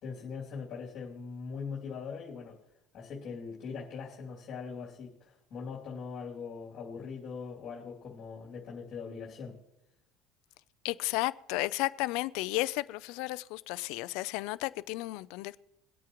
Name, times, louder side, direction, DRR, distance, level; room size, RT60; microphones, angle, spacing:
voice 1, 0.0-2.6 2.9-9.6, left 5 dB, 45° left, 2.7 m, -41 dB
voice 2, 10.8-15.6, left 20 dB, 70° left, 0.5 m, -33 dB
23.0 x 8.5 x 3.1 m
supercardioid pair, 125°, 0 cm